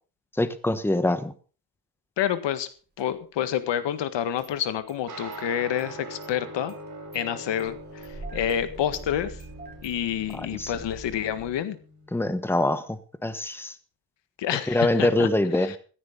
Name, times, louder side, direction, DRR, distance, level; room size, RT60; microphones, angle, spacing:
voice 1, 0.4-1.3 10.5-10.7 12.1-13.7 14.7-15.7, left 2 dB, 5° left, 11 dB, 1.2 m, -24 dB
voice 2, 2.2-2.7 3.0-6.7 7.1-9.4 9.8-11.8 14.4-15.3 15.6-15.8, left 10 dB, 85° left, 11 dB, 1.7 m, -28 dB
Engine starting, 3.0-3.1 4.4-5.0 5.3-5.4 5.8-5.9 6.2-6.3 6.7-7.2 7.6-11.5, right 2 dB, 25° right, 5.5 m, -44 dB
sound 1, 5.1-12.9, right 2 dB, 45° right, 7.7 m, -43 dB
16.0 x 14.0 x 3.8 m, 0.37 s
cardioid pair, 115°, 42 cm